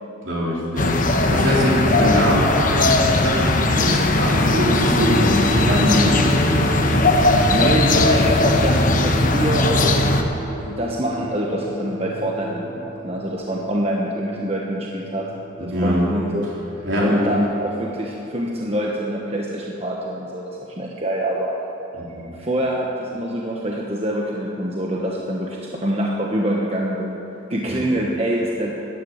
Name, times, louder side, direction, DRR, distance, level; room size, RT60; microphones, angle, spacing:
voice 1, 0.2-6.7 15.6-16.0 16.8-17.3 22.0-22.3 27.7-27.8, equal, 65° right, -5 dB, 4.0 m, -22 dB
sound 1, 0.8-10.2, left 2 dB, 40° left, 1.0 m, -18 dB
sound 2, 3.7-18.6, equal, 70° left, 2.2 m, -31 dB
voice 2, 7.2-10.0 10.6-15.3 15.6-16.5 17.0-21.5 22.3-27.2 27.5-28.7, right 1 dB, 30° right, -2 dB, 1.2 m, -25 dB
13.5 x 10.0 x 8.6 m, 2.9 s
head